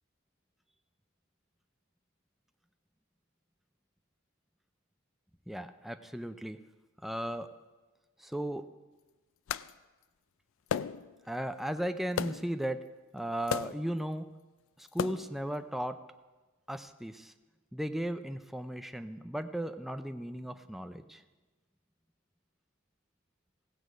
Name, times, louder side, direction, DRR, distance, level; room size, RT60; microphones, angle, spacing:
voice 1, 5.5-6.6 7.0-7.5 8.2-8.6 11.3-12.8 13.1-14.3 14.8-16.0 16.7-17.3 17.7-21.2, right 1 dB, ahead, 8 dB, 0.4 m, -36 dB
sound 1, 9.5-9.7 10.7-11.2 12.2-12.5 13.5-13.9 14.9-15.4, left 8 dB, 65° left, 0.3 m, -34 dB
16.0 x 8.0 x 5.0 m, 1.2 s
head